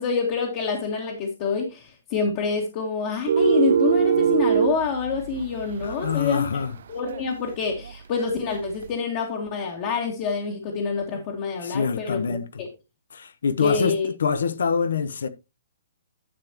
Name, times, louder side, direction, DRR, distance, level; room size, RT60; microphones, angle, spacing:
voice 1, 0.0-6.5 6.9-12.7 13.6-14.1, left 5 dB, 35° left, 2.1 m, -27 dB
sound 1, 3.3-6.7 7.0-7.3 7.8-8.8, right 8 dB, 65° right, 0.4 m, -23 dB
voice 2, 5.8-6.7 11.6-12.6 13.1-15.3, left 5 dB, 80° left, 1.0 m, -25 dB
11.5 x 7.1 x 3.0 m
hypercardioid pair, 155°, 0 cm